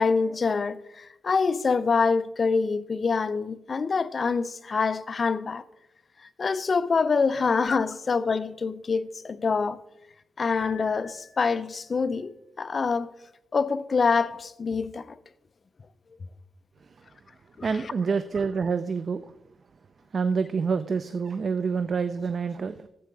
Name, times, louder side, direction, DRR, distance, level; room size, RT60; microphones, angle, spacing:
voice 1, 0.0-5.6 6.4-9.8 10.4-13.1 13.5-15.2 17.6-17.7, left 4 dB, 35° left, 0.4 m, -25 dB
Piano, 10.6-11.8, left 5 dB, 50° left, 4.3 m, -46 dB
voice 2, 17.6-19.2 20.1-22.9, right 5 dB, 40° right, 0.3 m, -27 dB
11.5 x 7.6 x 4.6 m
wide cardioid pair, 160°, 0 cm